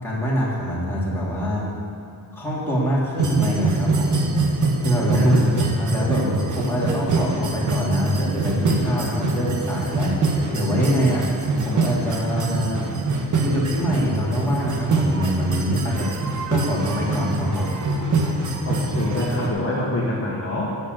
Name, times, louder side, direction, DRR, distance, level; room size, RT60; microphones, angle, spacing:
voice 1, 0.0-1.7 2.3-4.3 4.8-5.3 5.6-12.9 13.4-16.2 16.5-17.8, equal, 5° left, -7 dB, 2.8 m, -25 dB
sound 1, 3.2-19.5, right 2 dB, 55° right, 1.3 m, -24 dB
voice 2, 5.1-5.7 18.6-20.7, left 2 dB, 40° left, -5 dB, 1.5 m, -25 dB
9.5 x 7.2 x 7.9 m, 2.4 s
wide cardioid pair, 165°, 36 cm